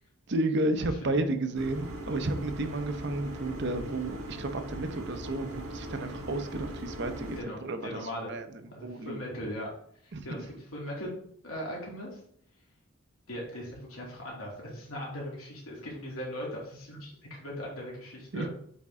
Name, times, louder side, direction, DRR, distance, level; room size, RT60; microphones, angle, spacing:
voice 1, 0.3-9.2 10.1-10.3 18.3-18.5, right 2 dB, 50° right, 8 dB, 0.6 m, -32 dB
sound 1, 1.5-7.4, right 1 dB, 75° right, 1.4 m, -40 dB
voice 2, 7.3-8.3 8.7-9.7 10.0-11.2 11.4-12.2 13.3-17.1 17.4-18.5, equal, 80° left, -4 dB, 2.6 m, -39 dB
8.3 x 3.6 x 3.6 m, 0.66 s
head